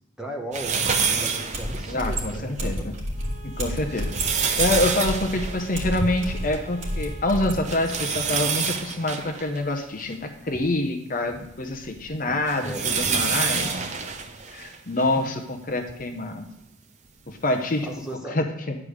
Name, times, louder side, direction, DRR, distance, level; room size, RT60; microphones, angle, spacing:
voice 1, 0.2-0.8 1.1-2.5 12.2-13.9 17.8-18.4, right 1 dB, 5° right, -1 dB, 1.2 m, -37 dB
sound 1, 0.5-2.4 2.9-3.0 3.7-6.7 7.0-7.1 7.6-10.7 11.3-15.2 15.9-16.0 17.3-17.4, right 6 dB, 35° right, 0.7 m, -28 dB
sound 2, 1.5-7.6, equal, 65° right, 2.6 m, -30 dB
voice 2, 1.9-2.9 3.4-4.2 4.6-13.7 14.5-16.5 17.3-17.9 18.3-18.8, left 2 dB, 40° left, 5 dB, 0.8 m, -26 dB
Bowed string instrument, 3.1-8.3, right 6 dB, 85° right, 1.3 m, -47 dB
10.5 x 4.9 x 6.5 m, 0.88 s
head